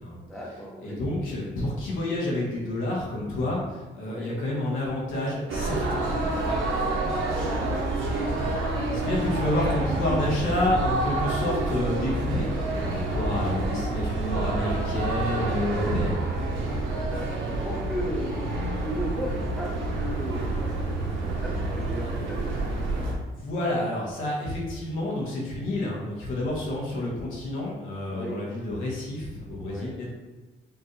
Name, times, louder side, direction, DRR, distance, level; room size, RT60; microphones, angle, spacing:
voice 1, 0.3-1.0 4.1-4.3 6.9-8.1 8.5-8.6 15.0-15.5 16.6-20.6 21.4-22.5 28.1-28.4 29.7-30.0, equal, ahead, -4 dB, 1.0 m, -36 dB
voice 2, 0.8-6.0 6.5-6.6 8.9-16.2 16.6-16.9 23.4-30.1, left 1 dB, 85° left, -4 dB, 1.3 m, -29 dB
sound 1, 5.5-23.1, right 2 dB, 80° right, 0.9 m, -28 dB
5.1 x 2.5 x 3.2 m, 1.2 s
cardioid pair, 90°, 20 cm